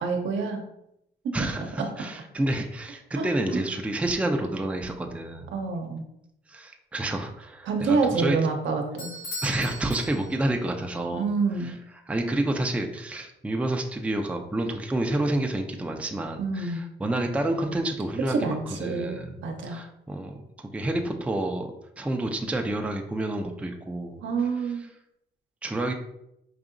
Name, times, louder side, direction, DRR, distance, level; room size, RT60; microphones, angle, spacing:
voice 1, 0.0-0.6 1.8-1.9 3.2-3.3 5.5-6.0 7.7-9.1 11.1-11.7 16.4-16.8 18.3-19.8 24.2-24.8, right 4 dB, 70° right, 3 dB, 0.7 m, -27 dB
voice 2, 1.3-5.5 6.5-8.4 9.4-11.3 11.6-11.7 12.1-19.4 19.7-21.7 22.0-24.2 25.6-25.9, right 1 dB, 5° right, 3 dB, 0.4 m, -29 dB
Bell / Doorbell, 9.0-10.7, left 1 dB, 85° left, 1.2 m, -38 dB
4.8 x 2.7 x 2.5 m, 0.80 s
cardioid pair, 90°, 20 cm